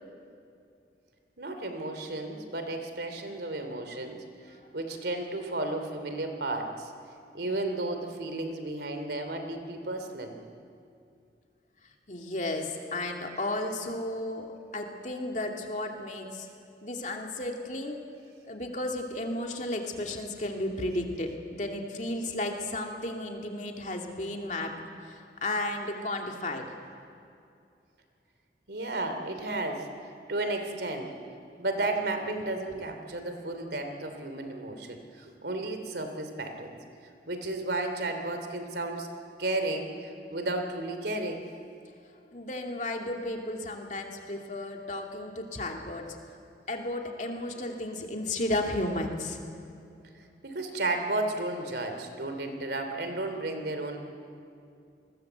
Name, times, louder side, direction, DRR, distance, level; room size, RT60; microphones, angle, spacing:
voice 1, 1.4-4.2 4.7-6.9 7.3-10.3 28.7-29.9 30.3-31.1 31.6-36.8 37.3-39.1 39.4-41.5 50.4-54.0, right 2 dB, 70° right, 6 dB, 3.0 m, -33 dB
voice 2, 12.1-16.5 16.8-18.0 18.5-26.7 42.3-46.2 46.7-49.4, left 1 dB, 40° left, 2 dB, 2.6 m, -33 dB
28.5 x 21.0 x 8.1 m, 2.5 s
head